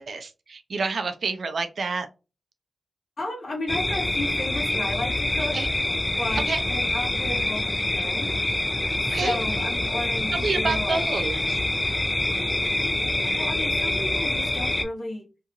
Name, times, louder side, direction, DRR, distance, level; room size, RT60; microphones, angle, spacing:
voice 1, 0.0-2.1 5.5-5.7 6.4-6.6 9.1-9.4 10.3-12.0, right 4 dB, 65° right, 0.4 m, -29 dB
voice 2, 3.2-5.6 6.2-8.4 9.2-11.0 12.8-12.9 13.2-15.3, left 2 dB, 50° left, 1.2 m, -33 dB
sound 1, 3.7-14.8, left 1 dB, 15° left, 0.3 m, -26 dB
2.8 x 2.4 x 2.4 m
wide cardioid pair, 165°, 0 cm